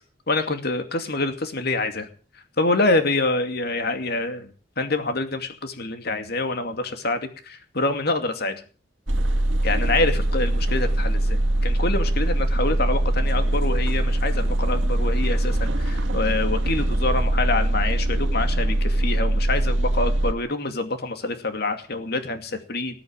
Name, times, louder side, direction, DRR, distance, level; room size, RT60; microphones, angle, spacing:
voice 1, 0.3-2.1 2.6-4.5 4.8-8.6 9.6-23.0, left 2 dB, 55° left, 7 dB, 2.5 m, -26 dB
sound 1, 9.1-20.3, right 1 dB, 90° right, 1.7 m, -22 dB
19.5 x 8.5 x 7.4 m, 0.39 s
head